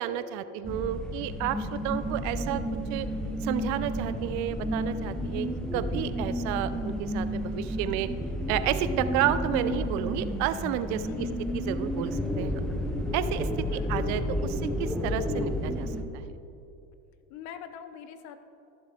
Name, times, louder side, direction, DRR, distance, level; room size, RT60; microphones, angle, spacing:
voice 1, 0.0-2.6 2.9-3.1 3.4-8.1 8.5-11.3 11.5-12.6 13.1-16.3, right 11 dB, 55° right, 13 dB, 0.5 m, -31 dB
sound 1, 0.6-16.0, equal, ahead, 0.6 m, -31 dB
voice 2, 11.0-11.3 13.6-13.9 17.3-18.4, left 9 dB, 50° left, 10 dB, 0.7 m, -43 dB
13.5 x 7.0 x 3.7 m, 2.8 s
supercardioid pair, 125°, 35 cm